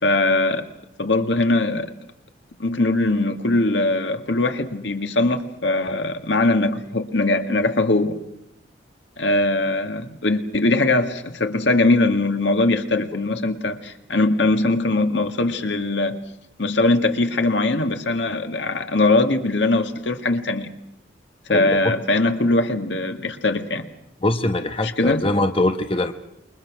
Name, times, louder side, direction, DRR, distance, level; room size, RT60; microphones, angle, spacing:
voice 1, 0.0-0.7 1.0-1.9 2.6-8.2 9.2-16.2 16.6-20.7 21.5-23.8 24.8-25.3, left 2 dB, 75° left, 7 dB, 1.9 m, -21 dB
voice 2, 24.2-26.1, left 2 dB, 30° left, 7 dB, 1.0 m, -22 dB
28.5 x 23.0 x 6.2 m, 0.80 s
head